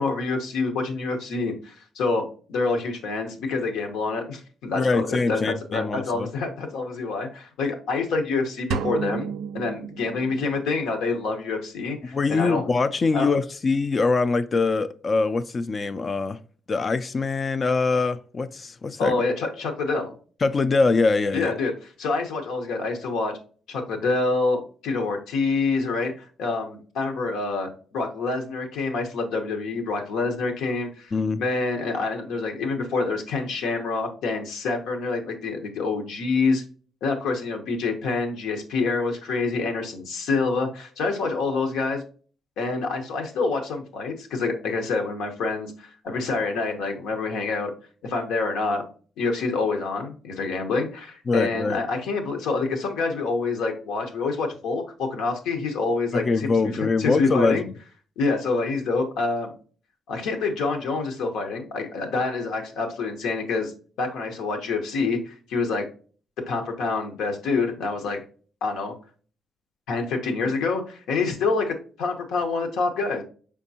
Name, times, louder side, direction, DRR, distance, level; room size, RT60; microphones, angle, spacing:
voice 1, 0.0-9.3 9.5-12.7 13.1-13.3 19.0-20.1 21.3-23.3 23.7-36.6 37.0-42.0 42.6-47.7 48.0-48.8 49.2-57.7 58.2-59.5 60.1-63.7 64.0-65.8 66.5-68.2 68.6-68.9 69.9-73.2, left 3 dB, 85° left, 0.9 m, -27 dB
voice 2, 4.7-6.3 12.1-16.4 16.7-19.2 20.4-21.5 31.1-31.4 51.3-51.8 56.1-57.6, left 4 dB, 35° left, 0.3 m, -23 dB
sound 1, 8.7-10.7, right 7 dB, 80° right, 0.3 m, -32 dB
5.2 x 3.6 x 2.7 m
cardioid pair, 90°, 0 cm